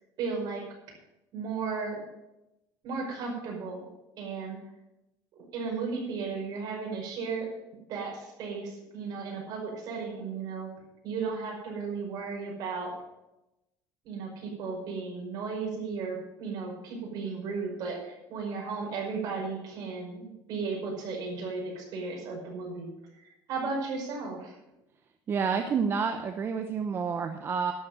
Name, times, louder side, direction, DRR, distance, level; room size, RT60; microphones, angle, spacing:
voice 1, 0.2-0.6 1.3-2.0 2.8-3.9 4.2-4.6 5.5-7.5 7.9-10.7 11.0-12.9 14.0-22.9 23.5-24.6, right 4 dB, 55° right, -1 dB, 5.5 m, -35 dB
voice 2, 25.3-27.7, right 6 dB, 30° right, 6 dB, 0.8 m, -29 dB
12.0 x 7.9 x 7.7 m, 0.93 s
cardioid pair, 160°, 8 cm